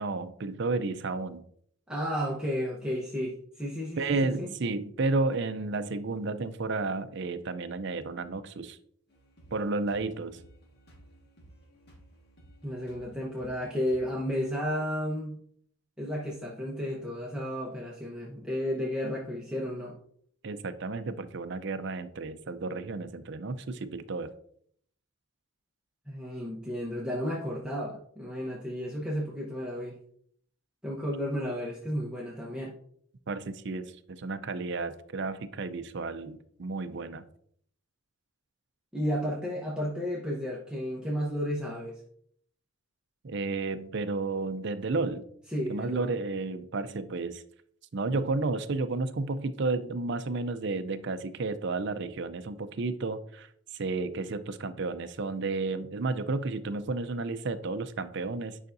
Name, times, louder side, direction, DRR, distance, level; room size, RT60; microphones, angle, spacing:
voice 1, 0.0-1.4 4.0-8.8 9.5-10.4 20.4-24.3 33.3-37.3 43.2-45.2 45.7-47.4 47.9-58.6, right 3 dB, 55° right, 10 dB, 0.5 m, -32 dB
voice 2, 1.9-4.5 12.6-15.4 16.0-20.0 26.1-30.0 30.8-32.8 38.9-42.0 45.5-46.1, equal, 5° right, -5 dB, 0.9 m, -33 dB
sound 1, 9.1-14.3, right 1 dB, 50° left, 1.7 m, -56 dB
9.3 x 5.7 x 2.6 m, 0.64 s
head